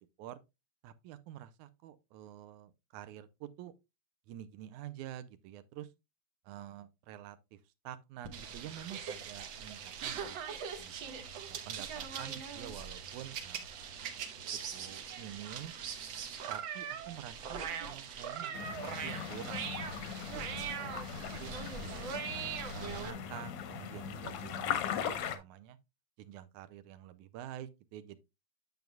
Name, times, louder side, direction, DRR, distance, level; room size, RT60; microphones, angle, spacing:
voice 1, 0.8-3.7 4.3-5.9 6.5-7.6 7.8-11.0 11.5-13.9 14.7-15.7 16.5-20.0 20.5-21.9 22.7-25.8 26.2-28.2, right 11 dB, 85° right, 2.1 m, -48 dB
sound 1, 8.2-23.1, right 7 dB, 70° right, 1.2 m, -41 dB
sound 2, 18.5-25.4, left 8 dB, 65° left, 1.5 m, -39 dB
9.3 x 7.0 x 2.2 m
omnidirectional pair, 3.4 m